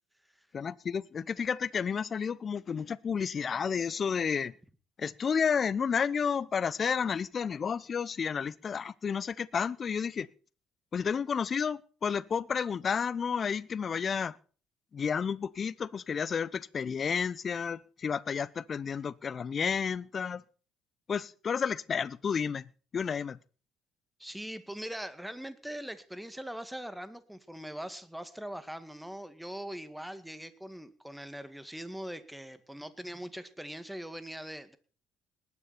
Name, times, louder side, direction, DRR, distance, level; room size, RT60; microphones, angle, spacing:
voice 1, 0.5-4.5 5.0-10.3 10.9-14.4 14.9-20.4 21.1-23.4, left 6 dB, 45° left, 0.7 m, -31 dB
voice 2, 24.2-34.8, equal, 5° right, 1.9 m, -41 dB
19.5 x 9.7 x 4.3 m
hypercardioid pair, 55°, 0 cm